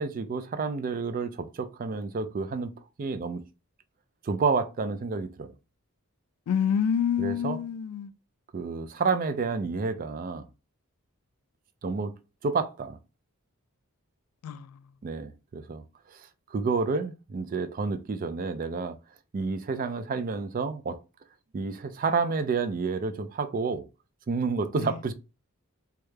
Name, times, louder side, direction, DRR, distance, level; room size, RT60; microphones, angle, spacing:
voice 1, 0.0-3.5 4.2-5.5 7.2-7.6 8.5-10.5 11.8-12.1 12.4-13.0 15.0-15.8 16.1-19.0 19.3-21.0 21.5-23.8 24.3-25.1, right 4 dB, 40° right, 0.3 m, -30 dB
voice 2, 6.5-8.1 14.4-14.8 24.7-24.9, left 8 dB, 90° left, 0.3 m, -27 dB
3.2 x 2.3 x 3.2 m
head